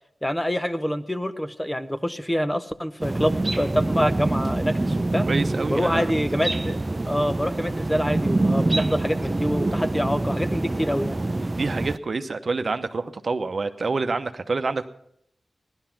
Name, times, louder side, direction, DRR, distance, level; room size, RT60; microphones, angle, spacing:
voice 1, 0.2-5.3 5.7-6.8 7.1-11.2, equal, 10° left, 10 dB, 0.8 m, -26 dB
sound 1, 3.0-12.0, right 2 dB, 30° right, 0.5 m, -25 dB
voice 2, 5.3-6.1 11.6-14.8, right 3 dB, 60° right, 8 dB, 0.8 m, -27 dB
15.0 x 11.5 x 5.9 m, 0.72 s
wide cardioid pair, 65°, 0 cm